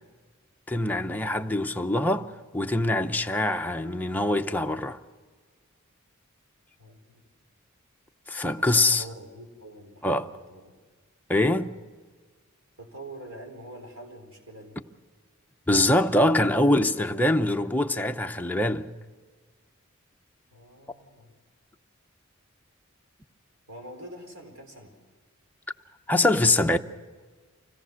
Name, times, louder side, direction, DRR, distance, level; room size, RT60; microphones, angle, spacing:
voice 1, 0.7-2.3 2.5-5.0 8.3-9.0 10.0-10.3 11.3-11.7 15.7-18.9 26.1-26.8, left 1 dB, 10° left, 0.6 m, -23 dB
voice 2, 6.8-7.2 8.3-10.7 12.8-14.8 20.5-21.4 23.7-24.9, right 1 dB, 80° right, 4.3 m, -45 dB
25.0 x 17.5 x 6.4 m
head